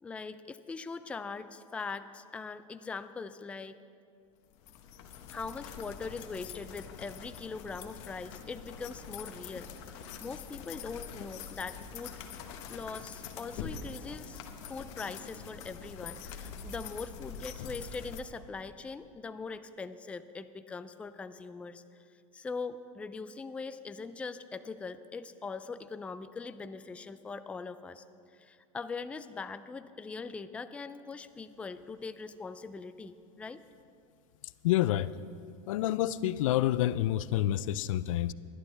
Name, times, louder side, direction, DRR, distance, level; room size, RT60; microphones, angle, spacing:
voice 1, 0.0-3.8 5.3-12.2 12.7-14.4 14.7-21.8 22.3-28.0 28.3-33.6, left 4 dB, 5° left, 11 dB, 0.3 m, -41 dB
sound 1, 4.5-18.2, left 7 dB, 60° left, 1.2 m, -44 dB
voice 2, 34.6-35.1 35.7-38.3, left 13 dB, 85° left, 17 dB, 0.4 m, -28 dB
19.5 x 11.5 x 3.3 m, 2.4 s
supercardioid pair, 135°, 16 cm